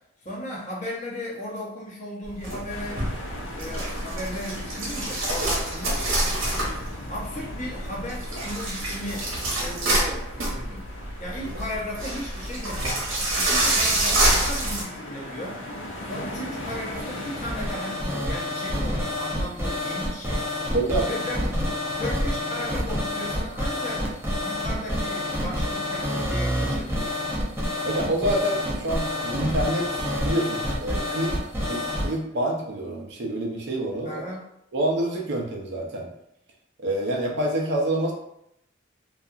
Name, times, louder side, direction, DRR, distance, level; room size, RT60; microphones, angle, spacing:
voice 1, 0.2-3.0 3.5-6.1 6.5-9.2 9.6-10.8 11.2-20.7 21.0-21.4 22.0-24.0 24.4-27.3 34.0-34.4, left 1 dB, 40° left, -4 dB, 0.7 m, -36 dB
sound 1, 2.2-14.8, right 1 dB, 85° right, 0.9 m, -27 dB
sound 2, 2.7-18.0, left 1 dB, 75° left, 0.5 m, -40 dB
sound 3, 16.3-32.1, left 1 dB, 10° right, 0.5 m, -28 dB
voice 2, 20.7-21.1 27.8-31.4 31.7-34.2 34.7-36.1 36.8-38.1, right 1 dB, 60° right, 0 dB, 0.5 m, -27 dB
2.7 x 2.3 x 2.4 m, 0.79 s
head